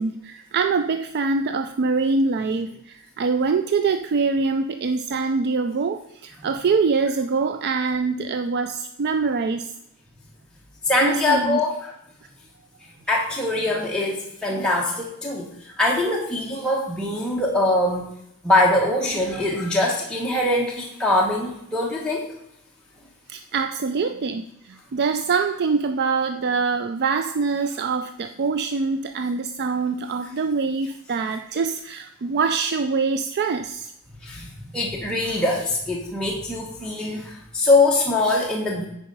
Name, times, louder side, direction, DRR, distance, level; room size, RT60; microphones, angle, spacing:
voice 1, 0.0-9.7 11.0-11.6 23.3-33.9, right 4 dB, 50° right, 8 dB, 0.4 m, -24 dB
voice 2, 10.8-11.9 12.8-18.1 18.4-22.3 34.2-38.8, left 2 dB, 5° left, -4 dB, 1.0 m, -23 dB
9.5 x 4.8 x 5.4 m, 0.77 s
head